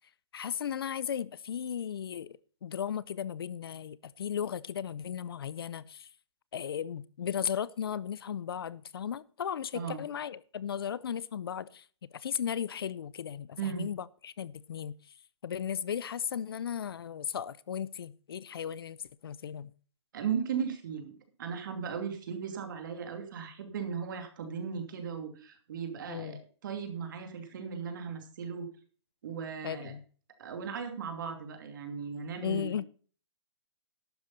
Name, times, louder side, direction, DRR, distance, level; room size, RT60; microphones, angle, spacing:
voice 1, 0.3-6.1 6.5-11.8 12.1-14.9 15.4-19.0 19.2-19.7 26.1-26.4 29.6-30.0 32.4-32.9, left 8 dB, 55° left, 0.5 m, -36 dB
voice 2, 13.6-13.9 20.1-28.7 29.2-29.9 30.4-32.7, right 7 dB, 45° right, 2.7 m, -37 dB
12.0 x 9.0 x 4.1 m
hypercardioid pair, 165°, 15 cm